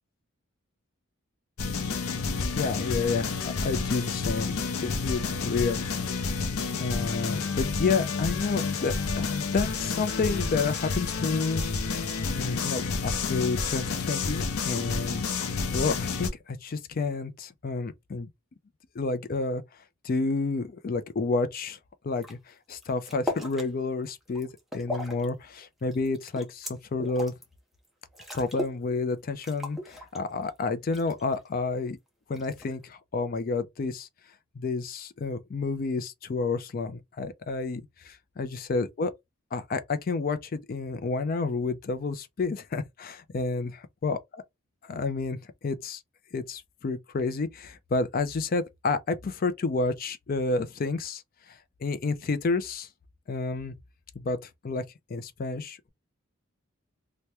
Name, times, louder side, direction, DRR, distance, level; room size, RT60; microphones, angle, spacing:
sound 1, 1.6-16.3, left 4 dB, 85° left, 0.6 m, -30 dB
voice 1, 2.5-6.5 6.8-11.6 12.4-18.3 19.0-19.6 20.0-21.8 22.0-27.3 28.3-32.0 32.3-34.1 34.6-39.1 39.5-44.2 44.8-45.4 45.6-46.0 46.3-51.2 51.5-52.9 53.3-53.7 54.1-54.8 55.1-55.9, left 4 dB, 45° left, 0.4 m, -30 dB
sound 2, 22.2-22.3 22.7-23.7 24.1-25.2 25.6-27.4 27.8-27.9 28.1-28.8 29.1-29.2 29.4-30.5 30.9-31.5 32.3-32.8, left 1 dB, ahead, 0.6 m, -37 dB
2.9 x 2.1 x 3.3 m
head